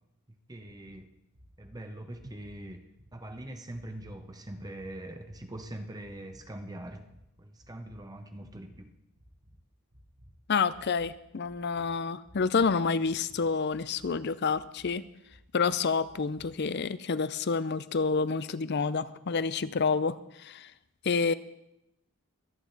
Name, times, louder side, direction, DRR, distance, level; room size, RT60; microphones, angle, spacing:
voice 1, 0.3-1.1 1.6-2.8 3.1-7.0 7.4-8.9, right 1 dB, 20° right, 6 dB, 1.0 m, -42 dB
sound 1, 0.8-1.0 1.3-1.7 2.1-2.6 2.9-3.3 3.7-4.2 4.5-4.9 5.2-5.7 6.0-6.4 6.8-7.2 7.6-8.0 8.4-8.8 9.2-9.5 9.9-10.3 10.7-11.1 11.4-11.8 12.2-12.7 13.0-13.4 13.7-14.1 14.5-14.9 15.3-15.7 16.0-16.4, equal, 85° right, 3.6 m, -57 dB
voice 2, 10.5-15.0 15.5-20.7 21.0-21.3, left 5 dB, 50° left, 16 dB, 0.5 m, -28 dB
23.0 x 9.5 x 4.0 m, 0.86 s
head